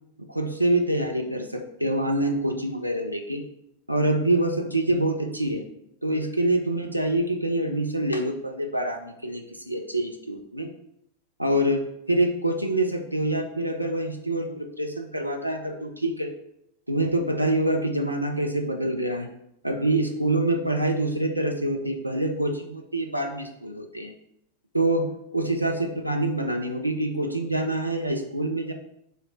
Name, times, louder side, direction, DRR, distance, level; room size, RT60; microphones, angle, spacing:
voice 1, 0.2-3.4 3.9-5.6 6.0-10.7 11.4-16.3 16.9-19.3 19.6-24.1 24.7-28.7, right 1 dB, 90° right, 4 dB, 0.3 m, -26 dB
3.0 x 2.4 x 4.3 m, 0.77 s
figure-of-eight pair, 90°, 0 cm